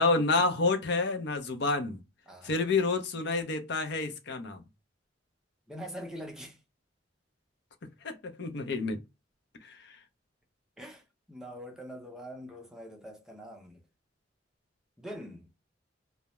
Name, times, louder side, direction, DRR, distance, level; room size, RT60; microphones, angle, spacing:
voice 1, 0.0-2.0 2.4-4.6 8.0-9.0 9.6-9.8, left 3 dB, 65° left, 0.6 m, -28 dB
voice 2, 5.7-6.6 10.8-11.0 11.3-13.8 15.0-15.5, equal, 5° right, 0.5 m, -43 dB
2.2 x 2.0 x 2.8 m
head